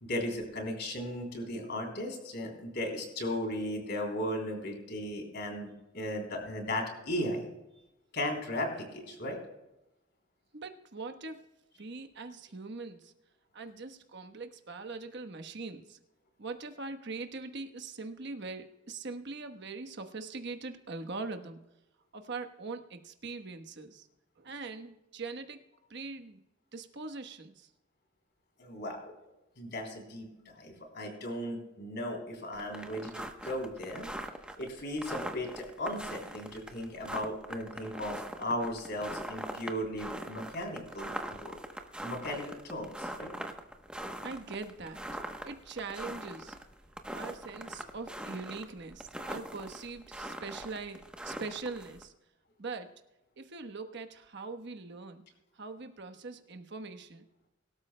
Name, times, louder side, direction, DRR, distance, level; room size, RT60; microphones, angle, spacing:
voice 1, 0.0-7.5 8.1-9.4 28.6-29.1 29.6-30.3 30.5-34.1 34.6-41.6 42.0-43.3, left 1 dB, 55° left, 1 dB, 3.4 m, -36 dB
voice 2, 10.5-11.4 11.8-13.1 13.5-16.0 16.4-21.6 22.1-24.1 24.4-25.6 25.9-26.4 26.7-27.7 44.2-45.0 45.4-46.6 47.1-52.1 52.6-52.9 53.4-55.2 55.6-57.5, right 3 dB, 60° right, 7 dB, 1.1 m, -42 dB
sound 1, 32.5-52.0, right 1 dB, 5° right, 0.9 m, -42 dB
23.5 x 13.0 x 2.2 m, 0.96 s
head